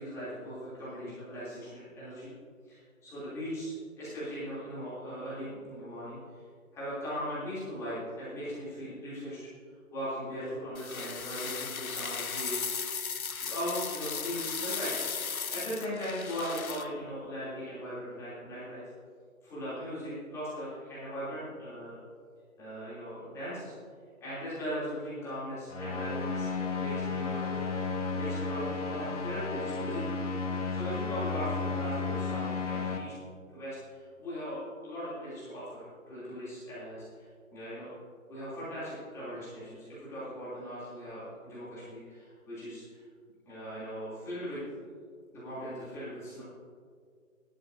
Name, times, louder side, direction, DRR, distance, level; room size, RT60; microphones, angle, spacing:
voice 1, 0.0-2.3 2.7-6.4 6.7-9.4 9.9-12.7 13.1-15.0 15.3-18.8 19.4-21.9 22.6-23.7 24.2-27.6 28.1-30.0 30.7-33.1 33.5-37.9 38.3-43.0 43.4-44.6 45.3-46.4, equal, 5° left, -12 dB, 3.1 m, -39 dB
sound 1, 10.7-16.9, left 6 dB, 90° left, 0.8 m, -36 dB
sound 2, 25.7-33.0, left 4 dB, 60° left, 1.8 m, -33 dB
16.5 x 12.0 x 2.7 m, 2.1 s
figure-of-eight pair, 150°, 41 cm